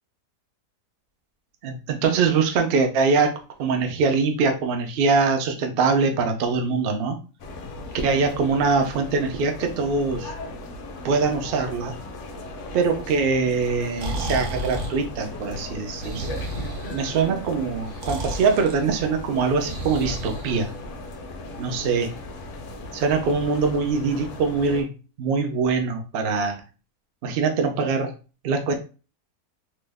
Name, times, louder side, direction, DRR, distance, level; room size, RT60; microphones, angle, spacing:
voice 1, 1.6-3.3 3.6-7.2 8.0-10.3 11.0-12.0 12.7-16.4 16.9-20.7 21.6-22.1 22.9-24.9 25.2-26.6 27.2-28.1 28.4-28.7, right 4 dB, 80° right, 4 dB, 0.5 m, -23 dB
sound 1, 7.4-24.8, left 2 dB, 60° left, 0.8 m, -37 dB
Breathing, 13.7-21.1, right 1 dB, 60° right, 0.9 m, -33 dB
2.9 x 2.0 x 3.4 m, 0.34 s
omnidirectional pair, 1.7 m